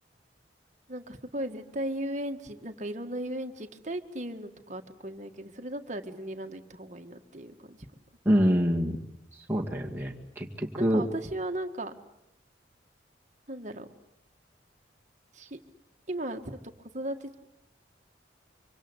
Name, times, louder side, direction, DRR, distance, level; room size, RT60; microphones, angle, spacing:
voice 1, 0.9-7.8 10.8-11.9 13.5-13.9 15.3-15.6 16.1-17.4, right 1 dB, 40° right, 5 dB, 1.8 m, -36 dB
voice 2, 8.3-9.0 9.5-11.0, equal, 10° right, -2 dB, 2.2 m, -26 dB
25.5 x 25.5 x 8.2 m, 0.81 s
head